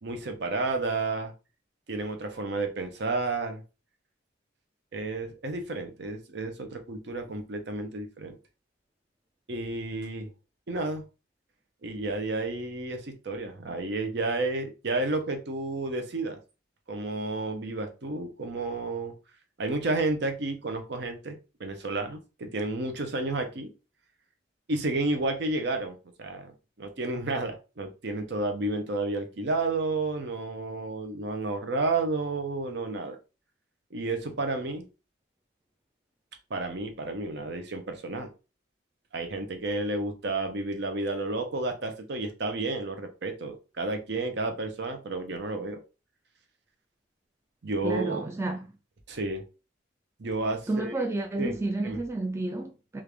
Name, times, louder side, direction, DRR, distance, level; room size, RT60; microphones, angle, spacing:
voice 1, 0.0-1.3 1.9-3.6 4.9-8.4 9.5-10.3 10.7-11.1 11.8-16.4 16.9-19.1 19.6-23.7 24.7-33.2 33.9-34.9 36.5-38.3 39.1-45.8 47.6-48.2 49.1-49.4 50.2-50.9 51.4-51.6 51.8-52.0, right 2 dB, 60° right, 0.6 m, -31 dB
voice 2, 47.8-48.6 50.7-53.0, right 2 dB, 15° right, 0.4 m, -30 dB
3.2 x 2.4 x 3.3 m
head